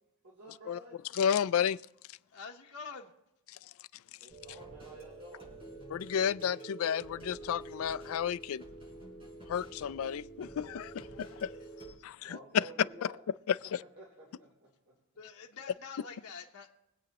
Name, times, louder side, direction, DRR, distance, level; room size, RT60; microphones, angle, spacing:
voice 1, 0.2-1.1 4.2-5.6 12.2-13.2 13.8-15.0, right 1 dB, 75° right, 3.3 m, -52 dB
voice 2, 1.2-1.8 5.9-8.6 9.5-11.5 12.0-12.4 13.5-13.6, left 8 dB, 70° left, 0.3 m, -32 dB
voice 3, 2.3-3.1 11.3-12.0 15.2-16.7, left 5 dB, 85° left, 1.1 m, -47 dB
sound 1, 4.3-11.9, right 2 dB, 25° right, 4.6 m, -48 dB
23.5 x 8.5 x 2.9 m
head